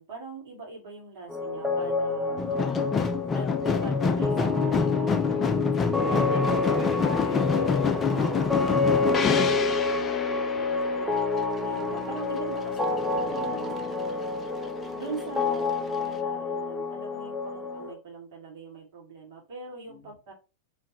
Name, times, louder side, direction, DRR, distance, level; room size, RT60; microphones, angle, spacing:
voice 1, 0.0-2.5 3.3-4.8 5.5-6.8 8.1-8.8 9.1-11.3 11.6-13.0 13.5-13.7 14.9-20.3, right 3 dB, 50° right, -2 dB, 2.5 m, -42 dB
sound 1, 1.3-17.9, left 3 dB, ahead, 0.9 m, -28 dB
voice 2, 1.8-3.1 4.9-8.1 11.9-12.1 13.1-13.7 19.9-20.0, right 3 dB, 35° right, -5 dB, 1.5 m, -41 dB
sound 2, 2.4-12.4 12.7-13.4 13.8-13.9, left 5 dB, 20° left, 0.5 m, -27 dB
sound 3, 7.0-10.0, left 8 dB, 60° left, 0.8 m, -39 dB
4.1 x 3.8 x 3.0 m, 0.30 s
figure-of-eight pair, 90°, 0 cm